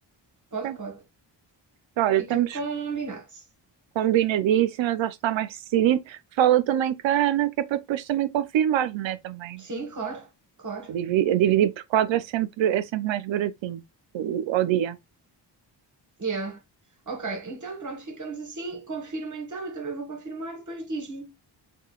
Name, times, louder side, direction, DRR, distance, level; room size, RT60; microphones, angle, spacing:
voice 1, 0.5-1.0 2.2-3.4 9.6-10.3 10.6-10.9 16.2-16.6 17.1-21.3, right 4 dB, 40° right, 1.2 m, -34 dB
voice 2, 2.0-2.6 4.0-9.6 10.9-13.8 14.1-15.0, right 11 dB, 75° right, 0.6 m, -24 dB
3.7 x 2.2 x 2.3 m
cardioid pair, 70°, 46 cm